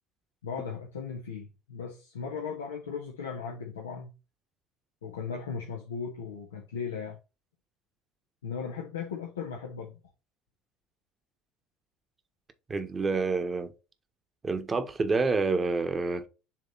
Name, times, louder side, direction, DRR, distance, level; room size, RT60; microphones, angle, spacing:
voice 1, 0.4-4.1 5.0-7.2 8.4-10.0, left 6 dB, 90° left, 1.3 m, -37 dB
voice 2, 12.7-13.7 14.4-16.3, right 4 dB, 30° right, 1.4 m, -28 dB
7.4 x 3.5 x 4.2 m
hypercardioid pair, 70°, 0 cm